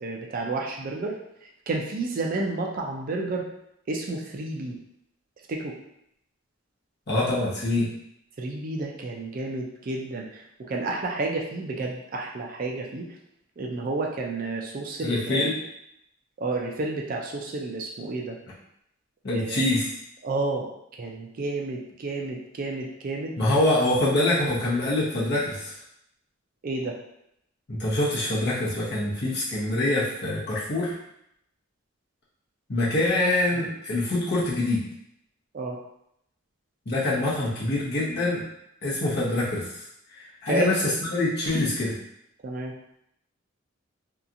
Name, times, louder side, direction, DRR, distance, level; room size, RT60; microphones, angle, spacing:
voice 1, 0.0-1.2 1.7-3.4 3.9-4.8 5.5-5.7 8.4-10.4 10.7-13.1 13.6-15.5 16.4-18.4 19.3-19.7 20.2-20.7 21.0-23.3 26.6-27.0 33.5-33.7 35.5-35.8 40.5-40.9 42.4-42.7, right 2 dB, 45° right, 0 dB, 0.4 m, -30 dB
voice 2, 7.1-7.9 15.0-15.5 19.2-19.8 23.4-25.7 27.7-31.0 32.7-34.8 36.9-38.4 38.8-39.7 40.2-42.0, left 1 dB, 55° left, -7 dB, 0.9 m, -25 dB
2.8 x 2.3 x 2.5 m, 0.77 s
head